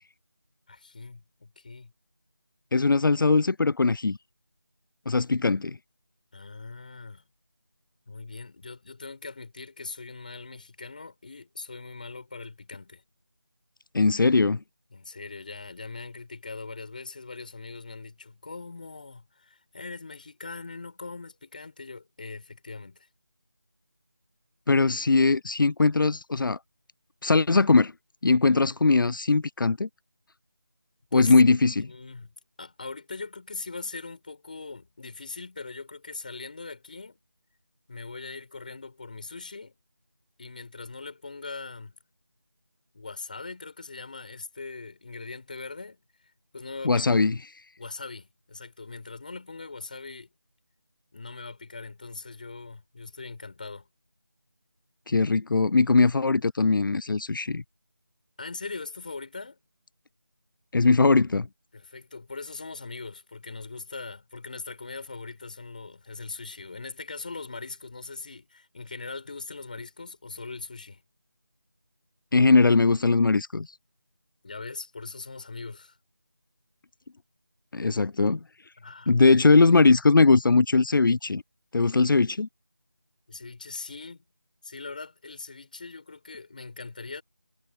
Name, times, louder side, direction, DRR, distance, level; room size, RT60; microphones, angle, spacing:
voice 1, 0.7-1.9 6.3-7.2 8.1-13.0 14.9-23.1 31.1-31.3 31.8-32.3 32.6-37.2 37.9-39.8 40.4-42.0 42.9-46.0 46.5-47.1 47.8-50.3 51.1-53.9 58.4-59.6 61.7-71.0 74.4-76.0 78.8-79.3 83.3-84.2 84.6-87.2, left 3 dB, 25° left, 6.7 m, -41 dB
voice 2, 2.7-4.2 5.1-5.8 13.9-14.6 24.7-26.6 27.2-27.9 28.2-29.9 31.1-31.9 46.8-47.6 55.1-57.6 60.7-61.5 72.3-73.8 77.7-78.4 79.1-81.4 81.7-82.5, left 3 dB, 80° left, 0.5 m, -20 dB
figure-of-eight pair, 180°, 11 cm